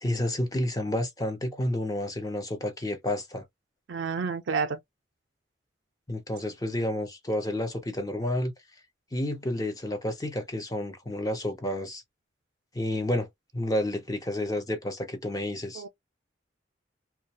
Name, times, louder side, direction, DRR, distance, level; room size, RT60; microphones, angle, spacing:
voice 1, 0.0-3.4 6.1-8.5 9.1-12.0 12.7-13.3 13.5-15.8, left 1 dB, 20° left, 0.6 m, -30 dB
voice 2, 3.9-4.8 15.7-15.9, right 5 dB, 75° right, 0.4 m, -29 dB
2.4 x 2.2 x 2.7 m
head